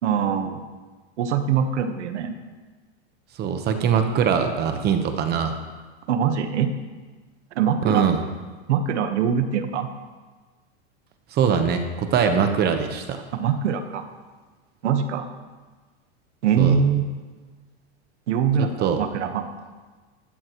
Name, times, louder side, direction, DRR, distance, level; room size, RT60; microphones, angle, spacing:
voice 1, 0.0-0.6 1.2-2.3 6.1-6.7 7.5-8.0 8.7-9.9 13.3-14.0 14.8-15.3 16.4-17.1 18.3-19.4, right 7 dB, 80° right, 7 dB, 1.3 m, -23 dB
voice 2, 3.4-5.5 7.8-8.2 11.3-13.2 16.6-16.8 18.8-19.0, right 7 dB, 30° right, 6 dB, 1.1 m, -22 dB
15.0 x 13.0 x 3.1 m, 1.3 s
supercardioid pair, 145°, 34 cm